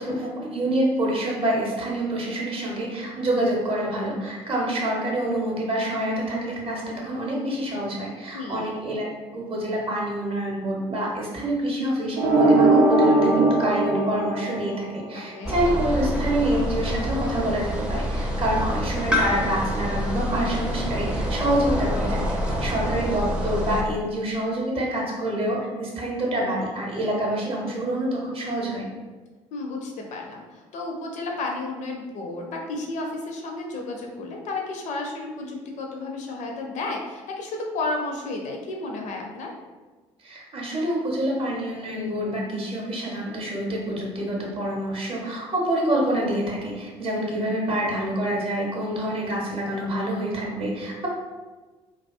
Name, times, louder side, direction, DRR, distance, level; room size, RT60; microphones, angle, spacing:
voice 1, 0.0-9.1 9.3-28.9 40.2-51.1, right 1 dB, 35° right, -2 dB, 0.7 m, -27 dB
voice 2, 8.3-8.7 15.1-15.6 22.5-22.9 29.5-39.5, left 2 dB, 50° left, 1 dB, 0.4 m, -32 dB
sound 1, 12.2-15.1, right 2 dB, 75° right, 0.5 m, -19 dB
sound 2, 15.4-23.8, equal, 5° right, 0.4 m, -27 dB
2.3 x 2.2 x 2.4 m, 1.3 s
figure-of-eight pair, 50°, 16 cm